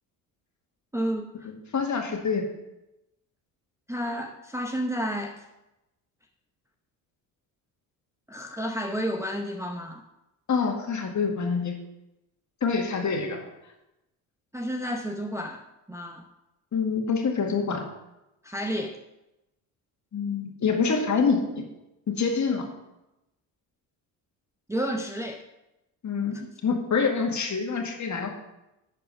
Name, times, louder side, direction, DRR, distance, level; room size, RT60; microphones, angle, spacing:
voice 1, 0.9-1.5 3.9-5.4 8.3-10.0 14.5-15.6 15.9-16.3 18.4-19.0 24.7-25.4, equal, 5° right, 2 dB, 0.8 m, -31 dB
voice 2, 1.4-2.4 10.5-11.8 12.6-13.5 16.7-17.9 20.1-21.6 22.1-22.7 26.0-26.4 26.6-28.3, left 5 dB, 40° left, 2 dB, 2.0 m, -26 dB
10.5 x 4.6 x 5.4 m, 0.94 s
supercardioid pair, 70°, 43 cm